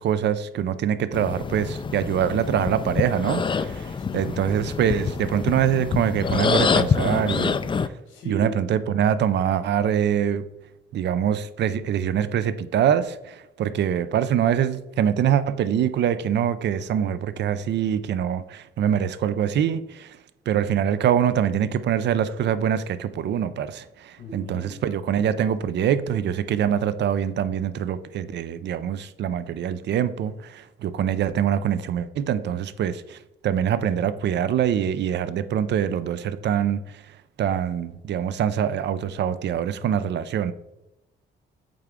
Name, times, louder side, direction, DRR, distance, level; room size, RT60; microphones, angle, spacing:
voice 1, 0.0-7.6 8.3-10.4 10.9-20.2 20.5-33.2 33.4-36.8 37.4-40.5, right 9 dB, 60° right, 0.5 m, -24 dB
sound 1, 1.1-7.9, left 5 dB, 25° left, 0.4 m, -26 dB
voice 2, 2.3-2.8 4.0-4.3 8.1-8.6 24.2-24.8, right 1 dB, 75° left, 1.6 m, -37 dB
8.5 x 3.4 x 3.6 m
cardioid pair, 90°, 20 cm